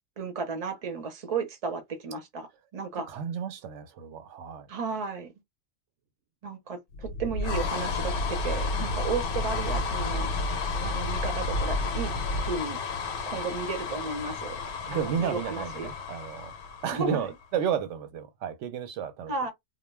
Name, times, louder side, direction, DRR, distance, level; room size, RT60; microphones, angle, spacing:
voice 1, 0.2-3.1 4.7-5.3 6.4-8.1 8.4-10.3 10.8-12.1 12.4-12.8 13.3-14.6 14.9-15.9 16.9-17.3 19.3-19.5, right 4 dB, 35° right, 0.7 m, -34 dB
voice 2, 3.1-4.7 14.8-16.5 16.8-19.3, right 8 dB, 90° right, 0.9 m, -32 dB
sound 1, 6.9-17.4, left 3 dB, 70° left, 0.9 m, -31 dB
2.2 x 2.2 x 3.1 m
omnidirectional pair, 1.2 m